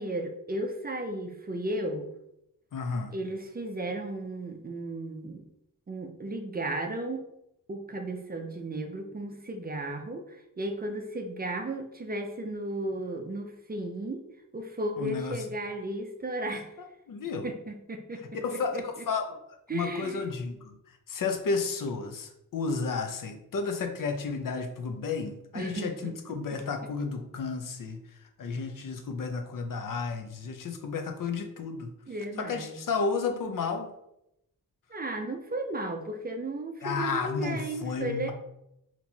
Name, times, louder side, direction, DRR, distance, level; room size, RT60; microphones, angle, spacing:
voice 1, 0.0-2.2 3.1-5.4 5.9-7.2 7.7-14.2 14.5-16.7 17.4-18.2 18.5-18.8 19.7-20.3 25.5-26.1 26.5-26.6 32.1-32.8 34.9-38.3, right 1 dB, 30° right, 4 dB, 0.4 m, -34 dB
voice 2, 2.7-3.1 15.0-15.4 17.1-17.5 18.4-19.3 19.7-20.7 21.1-28.0 28.4-31.9 32.4-33.9 36.8-38.3, left 4 dB, 70° left, 5 dB, 0.6 m, -32 dB
4.3 x 2.9 x 2.7 m, 0.82 s
wide cardioid pair, 140°, 34 cm